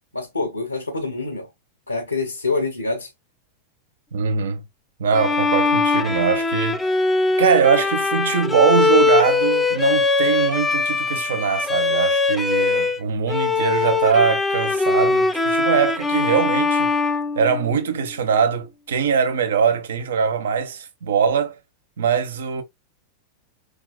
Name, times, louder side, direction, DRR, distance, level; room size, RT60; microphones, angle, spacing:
voice 1, 0.1-1.5 1.9-3.1, left 3 dB, 90° left, 0.9 m, -26 dB
voice 2, 4.1-4.6 5.0-6.8 7.4-21.5 22.0-22.6, right 6 dB, 70° right, 1.0 m, -22 dB
Bowed string instrument, 5.1-13.0 13.3-18.1, left 3 dB, 10° left, 0.6 m, -21 dB
4.9 x 3.4 x 2.2 m
figure-of-eight pair, 90°, 0 cm